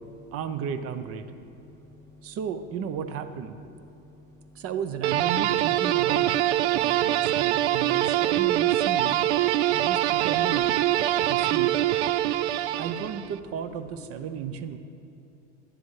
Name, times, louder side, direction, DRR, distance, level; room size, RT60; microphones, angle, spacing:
voice 1, 0.3-1.2 2.2-3.6 4.5-6.3 6.7-9.2 9.7-10.7 11.3-11.7 12.8-14.8, right 7 dB, 40° right, 10 dB, 0.8 m, -34 dB
voice 2, 1.4-2.4 3.9-4.6 7.7-7.8 9.6-9.9 11.1-11.3 12.2-12.8, left 1 dB, 10° left, 3 dB, 0.4 m, -52 dB
sound 1, 5.0-13.4, right 13 dB, 70° right, 0.5 m, -24 dB
11.5 x 10.0 x 4.8 m, 2.9 s
supercardioid pair, 115°, 35 cm